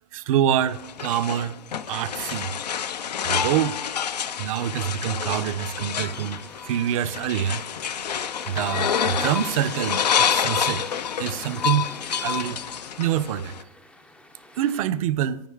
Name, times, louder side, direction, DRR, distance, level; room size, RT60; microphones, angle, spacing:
voice 1, 0.1-1.5 1.9-2.5 3.2-3.8 4.4-6.4 6.7-7.6 8.5-10.8 11.2-11.9 12.2-12.6 13.0-13.5 14.6-15.4, right 10 dB, 60° right, 0.5 m, -25 dB
sound 1, 0.7-13.6, left 8 dB, 90° left, 0.4 m, -28 dB
sound 2, 6.0-14.8, left 2 dB, 5° left, 0.3 m, -44 dB
14.0 x 4.8 x 2.3 m
hypercardioid pair, 105°, 20 cm